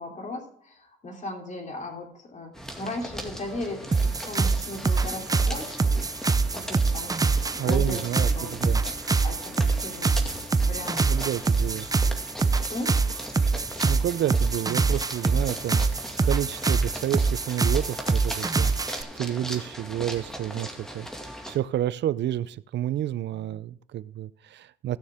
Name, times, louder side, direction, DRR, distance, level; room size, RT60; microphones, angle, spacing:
voice 1, 0.0-6.1 6.5-8.9 9.2-11.3 11.8-11.9 12.7-12.9, left 2 dB, 40° left, 2 dB, 3.1 m, -37 dB
sound 1, 2.5-21.6, equal, ahead, 2.1 m, -39 dB
sound 2, 3.9-19.0, right 4 dB, 20° right, 0.5 m, -24 dB
voice 2, 7.6-8.8 11.1-11.9 13.8-21.1 21.5-25.0, right 12 dB, 65° right, 18 dB, 0.5 m, -30 dB
sound 3, 10.2-13.7 14.0-14.1, left 2 dB, 85° left, 2.8 m, -52 dB
16.0 x 6.5 x 3.6 m, 0.64 s
cardioid pair, 90°, 20 cm